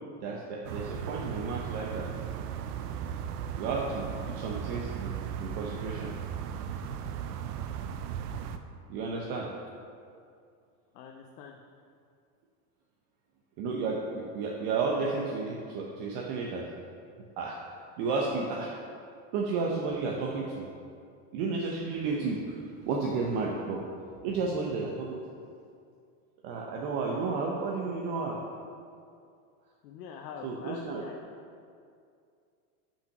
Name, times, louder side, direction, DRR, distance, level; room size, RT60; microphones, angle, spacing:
voice 1, 0.2-2.1 3.5-6.1 8.9-9.5 13.6-16.7 17.4-17.6 18.0-18.7 19.3-20.7 21.3-23.8 24.2-25.2 26.4-28.4 30.4-31.0, right 4 dB, 55° right, -2 dB, 1.0 m, -32 dB
sound 1, 0.6-8.6, right 8 dB, 75° right, 0.7 m, -36 dB
voice 2, 10.9-11.6 29.8-31.2, left 6 dB, 80° left, 2 dB, 0.8 m, -44 dB
5.9 x 5.8 x 5.9 m, 2.3 s
supercardioid pair, 125°, 47 cm